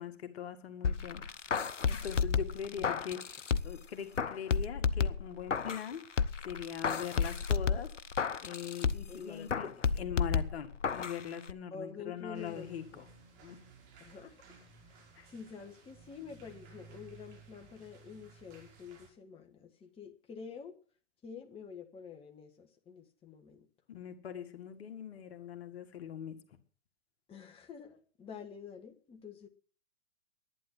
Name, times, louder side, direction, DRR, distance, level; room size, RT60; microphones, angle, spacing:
voice 1, 0.0-1.6 1.9-6.0 6.4-7.9 8.4-13.1 13.4-13.6 15.2-15.3 23.9-26.4, left 8 dB, 60° left, 8 dB, 2.0 m, -42 dB
sound 1, 0.8-3.8 4.2-5.9 6.2-9.2 9.5-11.2 11.5-11.6, left 6 dB, 90° left, 0.8 m, -32 dB
voice 2, 2.7-3.0 9.1-9.8 11.7-13.0 14.0-14.6 14.9-20.7 21.2-23.7 27.3-29.5, left 6 dB, 15° left, 3 dB, 1.5 m, -48 dB
sound 2, 12.3-19.1, right 5 dB, 45° right, 5.4 m, -57 dB
11.5 x 9.4 x 8.0 m, 0.43 s
figure-of-eight pair, 110°, 35 cm